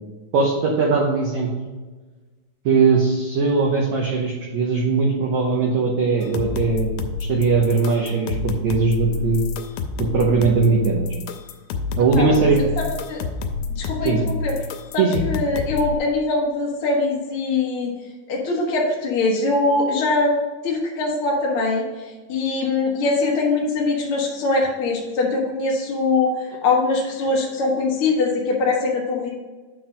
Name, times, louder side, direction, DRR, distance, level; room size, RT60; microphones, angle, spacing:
voice 1, 0.3-1.7 2.7-6.9 7.2-9.4 10.0-11.1 12.0-12.6 14.0-14.2 15.0-15.2, right 4 dB, 70° right, -1 dB, 1.8 m, -20 dB
sound 1, 6.2-16.0, left 4 dB, 90° left, 2.5 m, -28 dB
voice 2, 12.1-12.5 12.8-13.2 13.7-14.5 14.9-17.9 18.3-20.3 20.6-29.3, left 3 dB, 70° left, -2 dB, 1.3 m, -22 dB
9.2 x 3.9 x 5.1 m, 1.3 s
omnidirectional pair, 4.3 m